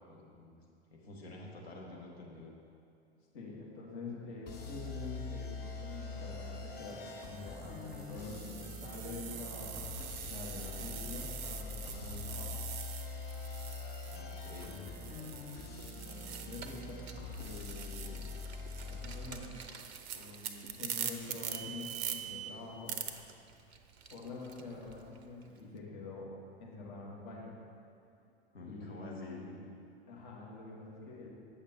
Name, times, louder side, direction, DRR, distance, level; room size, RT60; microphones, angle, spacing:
voice 1, 0.1-0.6 0.9-2.5 14.0-15.3 28.5-29.4, left 2 dB, 70° left, -3 dB, 1.6 m, -49 dB
voice 2, 3.3-9.8 10.2-12.6 15.9-18.3 18.8-19.6 20.1-22.9 24.1-26.3 26.6-27.5 28.6-29.6 30.1-31.3, left 3 dB, 50° left, -4 dB, 1.7 m, -46 dB
sound 1, 4.5-19.3, left 4 dB, 30° left, 0.9 m, -44 dB
sound 2, 5.8-6.1 6.8-17.0 17.2-22.2 22.9-23.1, right 9 dB, 35° right, 0.5 m, -44 dB
Car, 16.1-25.6, right 8 dB, 80° right, 0.6 m, -50 dB
8.5 x 6.3 x 3.8 m, 2.4 s
figure-of-eight pair, 85°, 32 cm